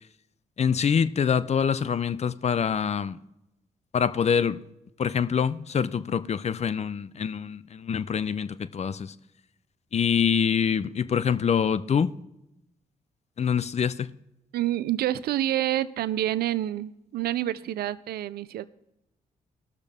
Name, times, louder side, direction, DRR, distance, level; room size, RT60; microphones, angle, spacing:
voice 1, 0.6-3.2 3.9-4.6 5.0-9.1 9.9-12.1 13.4-14.1, left 7 dB, 40° left, 0.5 m, -25 dB
voice 2, 14.5-18.6, right 13 dB, 75° right, 0.5 m, -28 dB
19.0 x 6.6 x 3.6 m
supercardioid pair, 55°, 16 cm